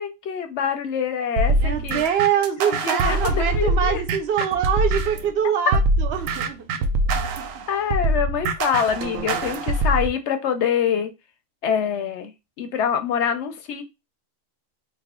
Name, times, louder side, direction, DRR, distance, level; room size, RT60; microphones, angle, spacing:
voice 1, 0.0-2.0 2.7-4.0 7.7-11.1 11.6-12.3 12.6-13.8, left 7 dB, 70° left, 0.8 m, -25 dB
sound 1, 1.4-5.3 5.7-10.1, right 2 dB, 90° right, 1.0 m, -23 dB
voice 2, 1.6-6.8 7.1-7.7, right 8 dB, 60° right, 0.9 m, -24 dB
3.4 x 2.0 x 3.5 m
omnidirectional pair, 1.3 m